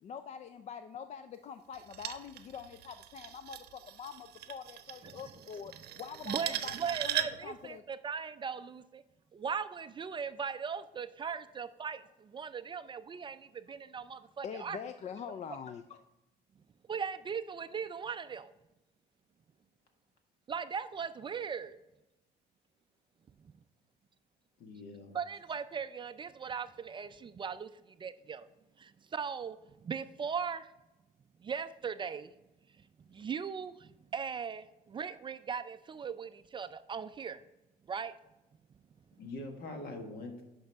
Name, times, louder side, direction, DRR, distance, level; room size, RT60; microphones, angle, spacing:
voice 1, 0.0-7.8 14.1-16.1, left 7 dB, 40° left, 10 dB, 0.4 m, -45 dB
sound 1, 1.7-7.5, right 12 dB, 70° right, 0.7 m, -39 dB
voice 2, 6.3-9.0 9.3-14.8 16.9-18.5 20.5-21.8 25.1-28.5 28.8-29.6 29.8-30.7 31.4-32.3 33.1-37.4 37.9-38.1, right 6 dB, 30° right, 12 dB, 0.3 m, -39 dB
voice 3, 24.6-25.2 33.1-33.2 39.2-40.4, left 2 dB, 70° left, 4 dB, 1.7 m, -43 dB
10.5 x 5.3 x 3.5 m, 0.98 s
cardioid pair, 110°, 17 cm